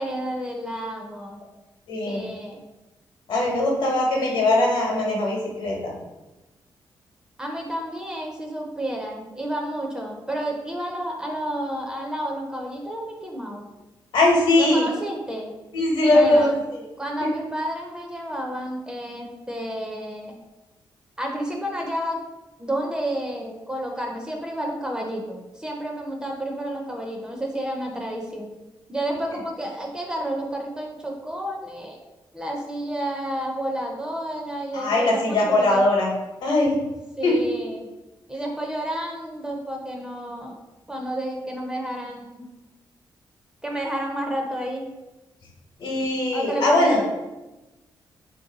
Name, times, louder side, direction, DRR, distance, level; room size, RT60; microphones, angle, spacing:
voice 1, 0.0-1.4 2.1-2.6 7.4-13.7 14.6-15.5 16.1-16.6 17.0-20.4 21.2-22.2 22.6-28.5 28.9-32.0 32.3-35.8 37.2-37.8 38.3-40.6 40.9-42.5 43.6-44.9 46.3-47.0, right 1 dB, 10° right, 1 dB, 0.4 m, -30 dB
voice 2, 1.9-2.2 3.3-5.9 14.1-14.8 15.7-16.8 34.7-36.1 36.4-36.7 37.2-37.3 45.8-47.0, left 2 dB, 75° left, -1 dB, 0.9 m, -20 dB
2.9 x 2.6 x 3.8 m, 1.1 s
wide cardioid pair, 180°, 8 cm